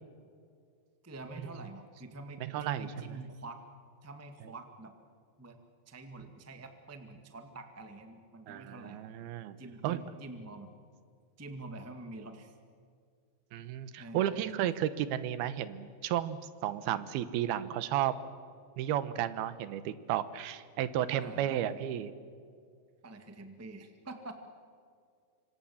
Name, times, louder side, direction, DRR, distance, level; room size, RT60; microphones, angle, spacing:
voice 1, 1.0-3.6 4.0-4.9 5.4-5.6 5.9-9.0 9.6-10.7 11.4-12.5 14.0-14.4 21.2-21.6 23.0-24.3, right 2 dB, 20° right, 6 dB, 0.4 m, -46 dB
voice 2, 2.4-2.9 8.5-9.6 9.8-10.0 13.5-18.1 18.8-22.1, right 11 dB, 85° right, 14 dB, 2.9 m, -33 dB
26.5 x 25.5 x 7.2 m, 2.2 s
omnidirectional pair, 4.3 m